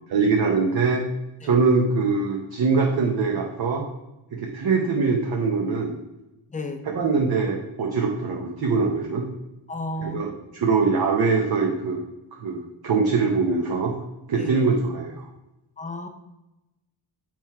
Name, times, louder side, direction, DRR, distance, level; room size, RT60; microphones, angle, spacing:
voice 1, 0.1-1.0 1.4-3.8 4.3-6.0 6.8-9.3 10.0-12.0 12.4-13.9 14.3-15.2, right 4 dB, 50° right, 0 dB, 0.9 m, -23 dB
voice 2, 6.5-6.8 9.7-10.3 14.4-14.5 15.8-16.1, left 2 dB, 15° left, 6 dB, 0.5 m, -32 dB
7.7 x 4.5 x 4.6 m, 0.95 s
wide cardioid pair, 180°, 50 cm